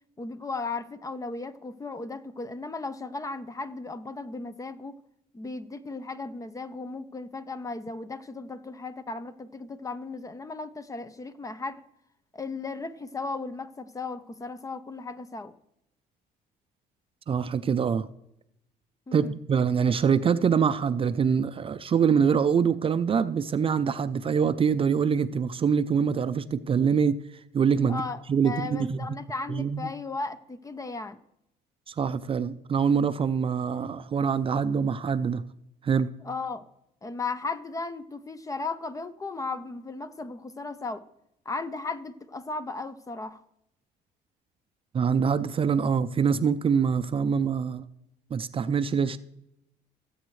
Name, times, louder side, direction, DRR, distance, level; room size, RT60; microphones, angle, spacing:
voice 1, 0.2-5.0 5.3-11.8 12.3-15.5 19.1-19.4 27.9-31.2 36.2-36.6 37.0-41.1 41.5-43.4, left 3 dB, 20° left, 13 dB, 0.6 m, -36 dB
voice 2, 17.3-18.1 19.1-27.2 27.5-28.0 28.3-29.0 29.5-29.9 31.9-35.4 35.8-36.1 44.9-47.9 48.3-49.2, right 6 dB, 35° right, 12 dB, 0.5 m, -24 dB
17.0 x 7.9 x 3.2 m, 0.81 s
cardioid pair, 110°, 17 cm